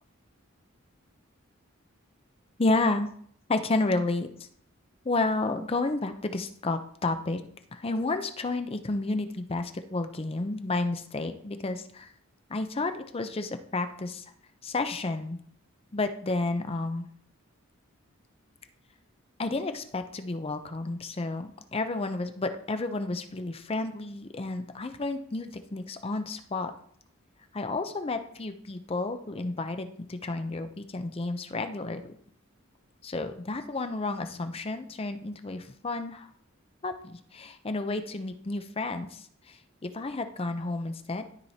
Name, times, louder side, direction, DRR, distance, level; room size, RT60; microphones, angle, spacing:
voice 1, 2.6-3.1 3.5-4.5 5.0-7.4 7.7-12.1 12.5-14.2 14.6-15.4 15.9-17.1 19.4-26.7 27.5-32.1 33.0-36.3 36.8-41.3, left 2 dB, 30° left, 8 dB, 0.5 m, -31 dB
12.5 x 4.5 x 2.8 m, 0.62 s
head